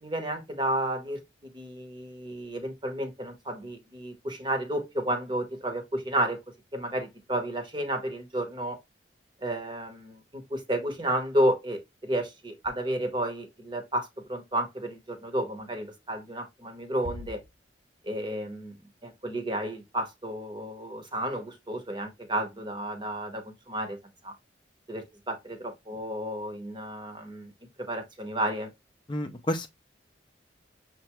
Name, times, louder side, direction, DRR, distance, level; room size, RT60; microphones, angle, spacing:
voice 1, 0.0-6.4 6.7-8.8 9.4-17.4 18.0-18.8 19.0-24.0 24.2-24.3 24.9-27.5 27.8-28.7, right 1 dB, 25° right, 0.9 m, -32 dB
voice 2, 29.1-29.7, left 1 dB, 25° left, 0.4 m, -30 dB
6.5 x 2.3 x 3.0 m
head